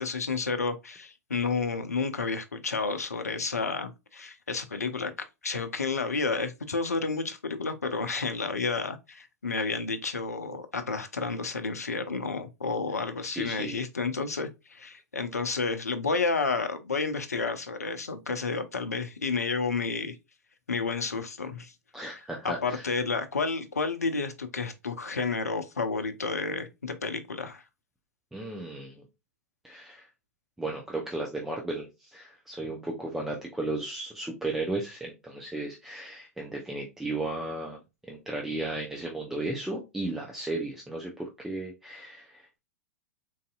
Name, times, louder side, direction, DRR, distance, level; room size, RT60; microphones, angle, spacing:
voice 1, 0.0-5.1 5.4-20.2 20.7-21.7 22.4-27.6, left 4 dB, 80° left, 0.5 m, -31 dB
voice 2, 13.2-13.8 21.9-22.8 28.3-29.0 29.6-30.1 30.6-37.8 38.1-42.6, right 2 dB, 5° right, 0.6 m, -35 dB
4.0 x 2.6 x 2.3 m
figure-of-eight pair, 100°, 8 cm